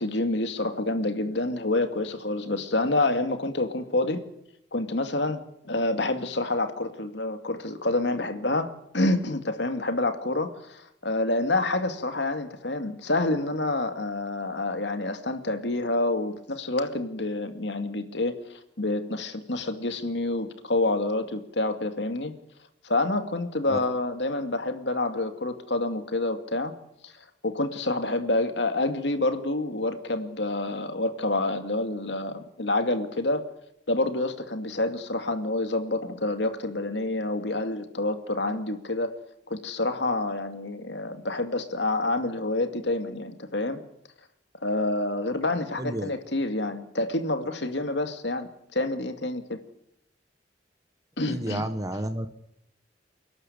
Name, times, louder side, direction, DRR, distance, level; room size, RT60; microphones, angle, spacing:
voice 1, 0.0-4.3 4.7-22.3 22.8-26.7 27.0-27.1 27.4-33.4 33.9-39.1 39.5-43.8 44.6-49.6 51.2-51.7, left 2 dB, 70° left, 8 dB, 2.4 m, -28 dB
voice 2, 45.8-46.1 51.3-52.3, right 1 dB, 20° right, 9 dB, 1.2 m, -31 dB
29.0 x 12.5 x 9.8 m, 0.78 s
head